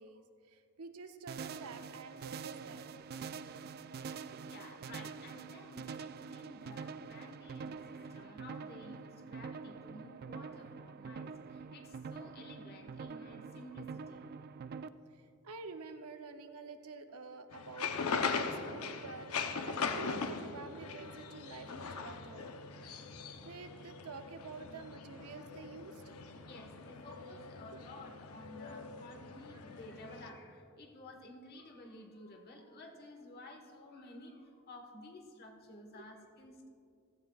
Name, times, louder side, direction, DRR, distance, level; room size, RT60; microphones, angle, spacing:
voice 1, 0.0-2.9 3.1-3.3 4.3-4.4 7.7-7.8 15.4-19.3 19.7-22.5 23.4-26.0 27.7-27.8 35.9-36.0, right 4 dB, 85° right, 7 dB, 0.8 m, -49 dB
sound 1, 1.3-14.9, right 5 dB, 45° right, 0.3 m, -46 dB
voice 2, 4.4-14.3 22.7-23.2 26.0-26.1 26.4-36.7, left 1 dB, 45° left, 3 dB, 1.4 m, -53 dB
sound 2, 17.5-30.3, left 5 dB, 75° left, 0.7 m, -40 dB
16.0 x 14.0 x 2.4 m, 2.6 s
head